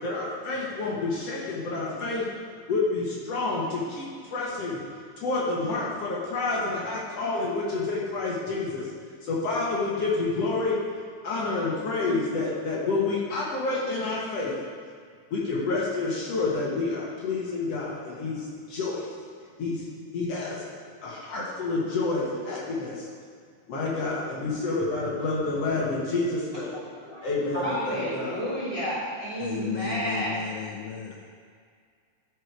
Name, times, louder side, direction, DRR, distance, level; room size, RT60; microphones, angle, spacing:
voice 1, 0.0-2.3 2.7-4.8 5.2-8.9 9.2-10.8 11.2-14.6 15.3-19.1 19.6-19.8 20.1-20.6 21.0-23.1 23.7-26.8 27.2-28.4, left 3 dB, 60° left, -5 dB, 2.3 m, -28 dB
voice 2, 27.5-30.3, equal, 10° right, -10 dB, 2.4 m, -31 dB
voice 3, 29.4-31.3, left 7 dB, 85° left, 1 dB, 1.3 m, -34 dB
13.0 x 4.9 x 4.7 m, 2.1 s
omnidirectional pair, 3.5 m